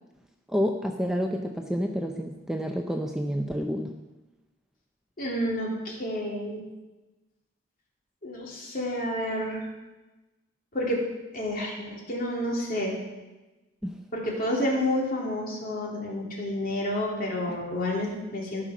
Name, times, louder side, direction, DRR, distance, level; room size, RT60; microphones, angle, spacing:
voice 1, 0.5-3.9 13.8-13.9 17.5-17.6, equal, 5° right, 3 dB, 0.6 m, -29 dB
voice 2, 5.2-6.6 8.2-9.6 10.7-11.0 11.3-13.0 14.1-18.7, left 1 dB, 45° left, -2 dB, 2.7 m, -29 dB
13.5 x 5.8 x 6.2 m, 1.1 s
head